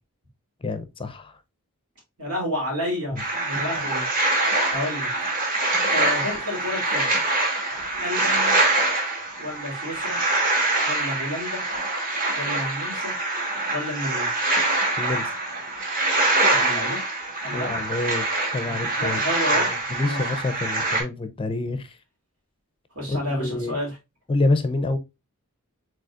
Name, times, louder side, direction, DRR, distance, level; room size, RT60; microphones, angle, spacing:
voice 1, 0.6-1.3 3.1-3.2 15.0-15.3 17.5-18.2 18.5-19.2 19.5-22.0 23.1-23.8 24.3-25.0, left 2 dB, 25° left, 0.4 m, -27 dB
voice 2, 2.2-4.1 4.7-5.1 5.9-7.1 8.0-8.6 9.4-10.2 10.8-11.6 12.3-13.1 13.7-14.3 16.5-17.0 17.4-17.7 18.6-19.7 20.0-20.2 22.9-23.9, left 1 dB, 90° right, 2.9 m, -30 dB
sound 1, 3.2-21.0, right 2 dB, 40° right, 1.4 m, -24 dB
5.1 x 3.8 x 2.4 m
head